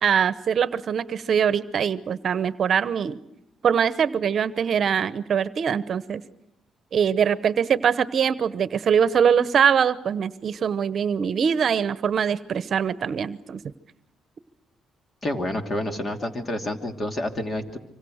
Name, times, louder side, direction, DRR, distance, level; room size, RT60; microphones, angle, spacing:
voice 1, 0.0-3.2 3.6-6.2 6.9-13.6, right 7 dB, 55° right, 15 dB, 0.9 m, -23 dB
voice 2, 15.2-17.8, left 1 dB, 35° left, 5 dB, 2.8 m, -28 dB
26.0 x 25.0 x 6.5 m, 0.84 s
cardioid pair, 90°, 0 cm